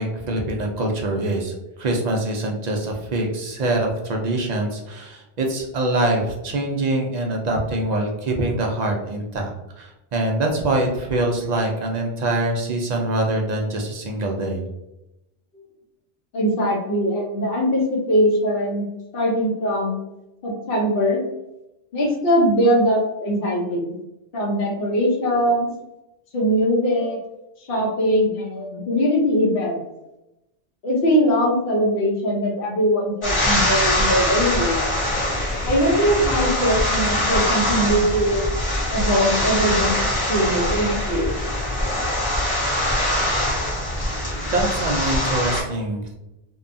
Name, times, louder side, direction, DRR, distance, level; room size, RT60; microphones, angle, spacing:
voice 1, 0.0-1.5 1.8-14.7 44.2-46.1, right 2 dB, 60° right, 1 dB, 0.4 m, -24 dB
voice 2, 16.3-18.8 19.1-20.0 20.4-21.2 21.9-23.9 24.3-25.7 26.3-27.2 27.7-29.8 30.8-34.8 35.6-38.4 38.9-41.3, equal, 60° left, -2 dB, 0.9 m, -21 dB
sound 1, 33.2-45.6, left 1 dB, 30° left, 0.9 m, -23 dB
2.7 x 2.2 x 2.5 m, 0.92 s
omnidirectional pair, 1.2 m